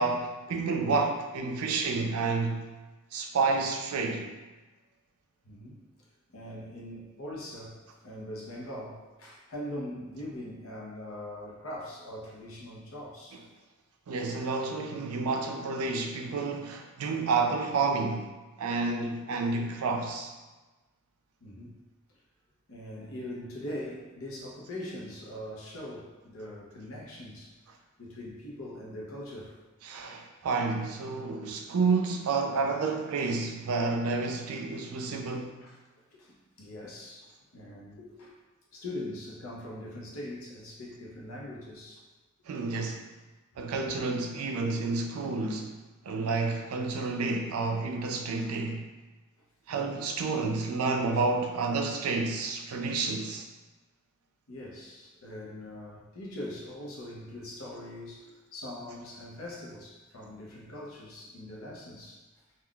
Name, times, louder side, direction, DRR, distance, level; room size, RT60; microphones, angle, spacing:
voice 1, 0.0-2.8 3.1-4.3 14.1-20.3 29.8-35.6 42.5-43.0 43.6-48.9 49.7-53.4, right 4 dB, 85° right, 0.4 m, -30 dB
voice 2, 5.4-5.8 6.3-13.4 15.8-15.9 21.4-21.7 22.7-27.5 28.0-29.6 31.5-31.6 35.6-35.8 36.1-38.3 38.7-42.0 54.5-62.2, left 1 dB, 70° left, 0.7 m, -42 dB
3.6 x 2.3 x 2.3 m
head